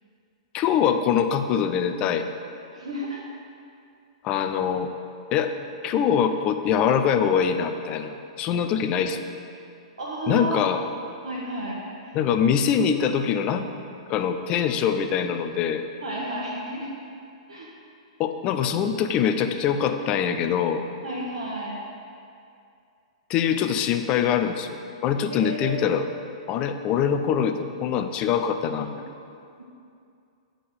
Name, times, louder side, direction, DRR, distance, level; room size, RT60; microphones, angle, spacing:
voice 1, 0.5-2.3 4.2-4.9 5.3-5.5 5.8-9.2 10.3-10.8 12.1-13.7 14.1-15.8 18.2-20.8 23.3-24.8 25.0-26.0 26.5-28.9, left 8 dB, 30° left, 8 dB, 0.5 m, -23 dB
voice 2, 2.7-3.2 4.3-4.4 10.0-10.6 11.2-12.2 16.0-16.9 17.5-17.7 21.0-21.8 25.3-25.8, right 1 dB, 65° right, -6 dB, 1.3 m, -32 dB
9.3 x 3.8 x 6.7 m, 2.5 s
figure-of-eight pair, 105°, 3 cm